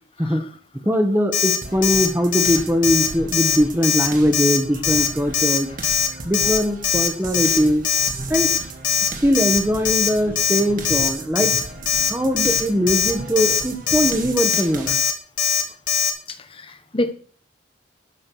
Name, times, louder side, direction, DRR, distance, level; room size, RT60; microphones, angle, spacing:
voice 1, 0.8-5.7 6.2-7.9 8.3-8.5 9.2-11.5 12.1-15.0, equal, 10° right, 7 dB, 1.4 m, -21 dB
Alarm, 1.3-1.6 1.8-2.1 2.3-2.6 2.8-3.1 3.3-3.6 3.8-4.1 4.3-4.6 4.8-5.1 5.3-5.6 5.8-6.1 6.3-6.6 6.8-7.1 7.3-7.6 7.8-8.1 8.3-8.6 8.8-9.1 9.4-9.6 9.9-10.1 10.4-10.6 10.9-11.1 11.4-11.6 11.9-12.1 12.4-12.6 12.9-13.1 13.4-13.6 13.9-14.1 14.4-14.6 14.9-15.1 15.4-15.6 15.9-16.1, left 7 dB, 45° left, 2.3 m, -20 dB
sound 1, 1.6-15.0, right 2 dB, 45° right, 2.0 m, -35 dB
voice 2, 16.5-17.1, left 1 dB, 30° left, 10 dB, 1.2 m, -26 dB
12.0 x 7.7 x 6.3 m, 0.43 s
head